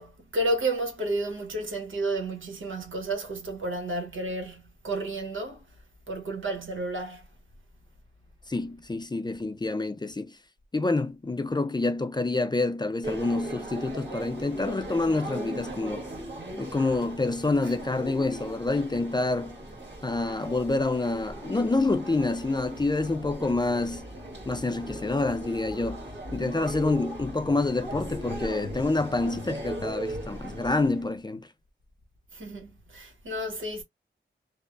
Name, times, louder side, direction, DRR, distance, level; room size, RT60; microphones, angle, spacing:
voice 1, 0.0-5.7 6.1-7.3 17.6-17.7 32.3-33.8, right 1 dB, 90° right, 1.0 m, -31 dB
voice 2, 8.5-10.3 10.7-16.0 16.6-19.6 20.0-24.1 24.5-26.1 26.3-31.5, left 3 dB, 20° left, 0.4 m, -27 dB
sound 1, 13.0-31.1, right 1 dB, 65° right, 1.6 m, -38 dB
3.1 x 2.1 x 2.4 m
wide cardioid pair, 80°, 20 cm